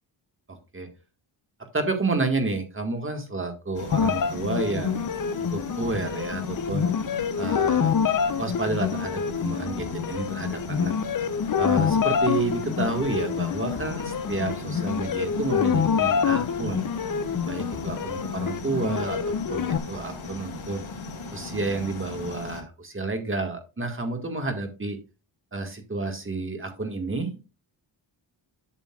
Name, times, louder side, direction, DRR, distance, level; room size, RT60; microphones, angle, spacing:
voice 1, 0.5-0.9 1.7-5.1 5.5-6.9 7.4-7.9 8.4-10.9 11.6-16.9 17.5-20.8 21.3-25.0 25.5-27.4, right 3 dB, 25° right, 5 dB, 1.7 m, -30 dB
sound 1, 3.7-22.6, left 3 dB, 80° left, 2.4 m, -38 dB
sound 2, 3.9-19.8, left 7 dB, 45° left, 0.7 m, -26 dB
11.5 x 6.7 x 2.4 m, 0.30 s
wide cardioid pair, 120°, 48 cm